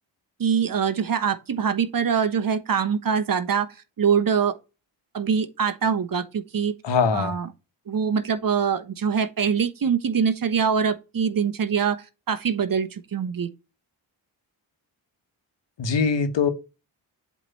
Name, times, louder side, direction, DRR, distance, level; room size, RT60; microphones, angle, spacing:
voice 1, 0.4-3.7 4.0-4.6 5.1-6.7 7.1-7.5 7.9-13.5, right 7 dB, 40° right, 1.0 m, -24 dB
voice 2, 6.8-7.3 15.8-16.5, left 5 dB, 60° left, 1.3 m, -22 dB
7.8 x 3.3 x 4.1 m
supercardioid pair, 50°, 50 cm